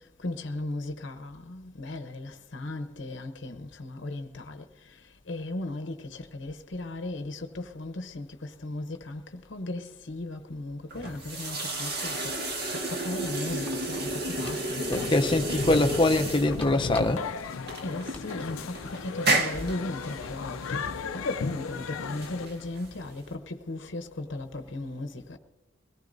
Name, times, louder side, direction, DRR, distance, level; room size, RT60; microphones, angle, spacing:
voice 1, 0.2-4.6 5.3-12.3 12.7-15.7 17.8-20.8 21.1-25.4, left 2 dB, 60° left, 0.8 m, -36 dB
sound 1, 10.9-23.3, right 2 dB, 50° right, 1.8 m, -33 dB
sound 2, 13.4-19.1, left 2 dB, 10° left, 2.2 m, -48 dB
sound 3, 14.9-22.7, left 5 dB, 85° left, 0.5 m, -36 dB
voice 2, 14.9-17.3, left 2 dB, 25° left, 0.6 m, -24 dB
22.5 x 17.5 x 2.6 m
head